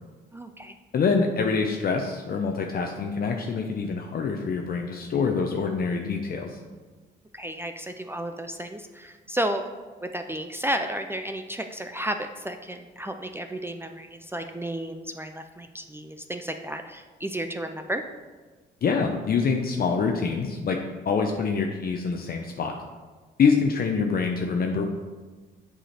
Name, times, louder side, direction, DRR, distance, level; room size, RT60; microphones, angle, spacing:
voice 1, 0.3-0.8 7.3-9.6 10.0-18.0, right 1 dB, 10° right, 6 dB, 0.4 m, -32 dB
voice 2, 0.9-6.6 18.8-22.8 23.4-24.8, left 5 dB, 50° left, 3 dB, 0.7 m, -25 dB
7.6 x 5.0 x 4.3 m, 1.3 s
cardioid pair, 90°, 20 cm